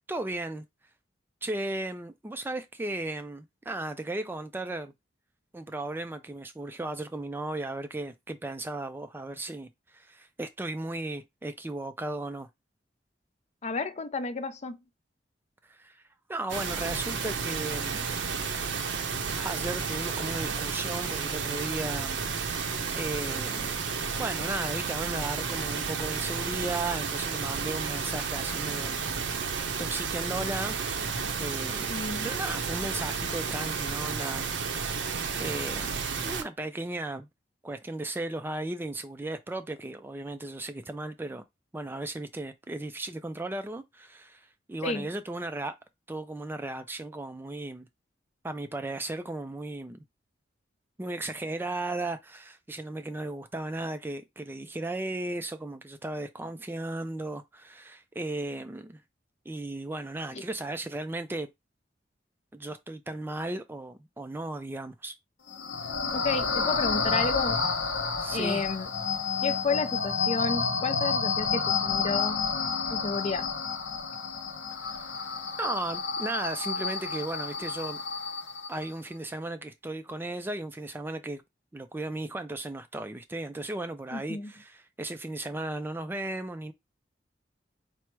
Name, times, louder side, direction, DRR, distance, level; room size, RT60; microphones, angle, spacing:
voice 1, 0.1-0.6 1.4-4.9 5.5-12.5 15.7-16.0 16.3-18.1 19.4-22.2 22.9-23.8 24.2-30.8 31.4-31.9 32.2-34.5 35.4-36.0 36.2-37.3 37.6-41.4 41.7-45.8 46.1-47.9 48.4-50.0 51.0-59.0 59.5-61.5 62.5-65.2 68.2-68.6 74.8-75.1 75.6-78.0 78.7-81.4 81.7-86.7, right 2 dB, 10° right, 0.3 m, -36 dB
voice 2, 13.6-14.8 31.9-32.3 44.8-45.1 60.3-60.4 66.1-67.6 68.3-68.9 69.4-72.5 72.9-73.5 84.1-84.5, left 4 dB, 40° left, 0.5 m, -31 dB
sound 1, 16.5-36.4, right 5 dB, 85° right, 0.7 m, -32 dB
sound 2, 65.5-78.9, left 5 dB, 80° left, 1.0 m, -30 dB
4.6 x 2.0 x 4.5 m
head